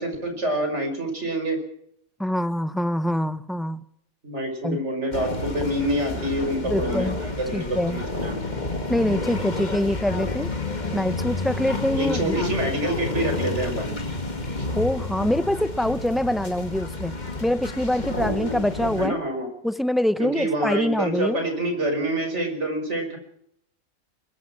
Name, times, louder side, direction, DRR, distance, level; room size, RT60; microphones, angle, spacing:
voice 1, 0.0-1.6 4.2-8.6 11.9-13.9 19.0-19.5 20.2-23.2, right 1 dB, 50° right, 5 dB, 5.6 m, -27 dB
voice 2, 2.2-3.8 4.6-4.8 6.6-7.2 7.5-8.0 8.9-10.5 10.9-12.4 14.7-17.1 17.4-19.2 19.6-21.4, left 1 dB, ahead, 12 dB, 0.7 m, -24 dB
sound 1, 5.1-19.1, left 2 dB, 30° left, 2.0 m, -30 dB
22.0 x 21.5 x 6.1 m, 0.70 s
omnidirectional pair, 1.5 m